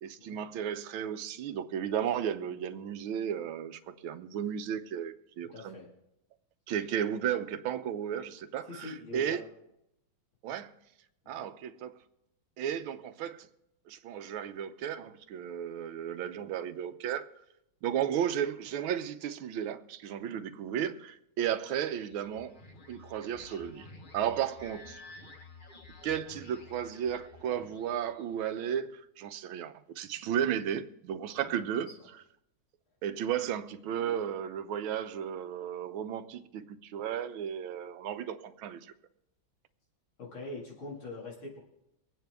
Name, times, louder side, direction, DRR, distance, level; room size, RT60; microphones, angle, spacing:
voice 1, 0.0-5.7 6.7-9.4 10.4-10.7 11.3-12.0 12.6-13.5 13.9-17.2 17.8-22.5 22.9-23.9 24.1-25.0 26.0-31.9 33.0-38.9, right 9 dB, 85° right, 1.6 m, -34 dB
voice 2, 5.5-5.9 8.7-9.4 10.5-10.6 11.2-11.3 31.4-31.9 40.2-41.6, left 2 dB, 75° left, 3.1 m, -43 dB
sound 1, 21.9-28.5, left 3 dB, 35° left, 0.9 m, -52 dB
23.5 x 9.0 x 3.5 m
omnidirectional pair, 2.2 m